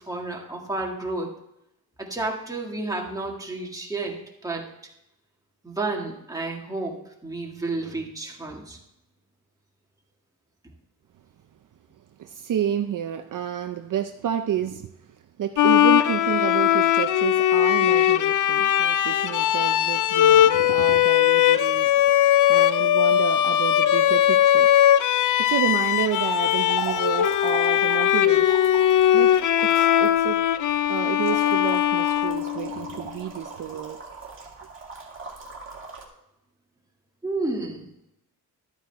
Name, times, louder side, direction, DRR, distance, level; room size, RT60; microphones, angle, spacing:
voice 1, 0.0-1.3 2.0-4.7 5.6-8.8 37.2-37.8, right 2 dB, 10° right, -2 dB, 2.0 m, -31 dB
voice 2, 12.2-24.7 25.4-28.6 29.1-29.3 29.6-30.4 30.9-34.0, right 9 dB, 55° right, 7 dB, 0.6 m, -30 dB
Bowed string instrument, 15.6-33.0, left 11 dB, 55° left, 0.5 m, -20 dB
sound 1, 25.7-36.0, right 4 dB, 30° right, 2.3 m, -38 dB
12.5 x 8.9 x 3.5 m, 0.83 s
wide cardioid pair, 145°, 38 cm